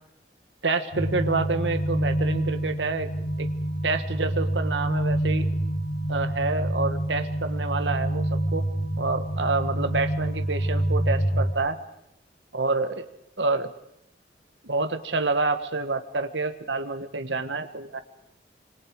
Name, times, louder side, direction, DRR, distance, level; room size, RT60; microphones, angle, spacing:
voice 1, 0.6-3.1 3.4-3.5 3.8-5.4 6.1-8.6 9.0-11.8 12.5-13.0 13.4-13.7 14.6-18.0, right 3 dB, 90° right, 8 dB, 1.5 m, -28 dB
sound 1, 0.9-11.5, right 1 dB, 85° left, 3.0 m, -27 dB
26.0 x 25.5 x 4.7 m, 0.81 s
head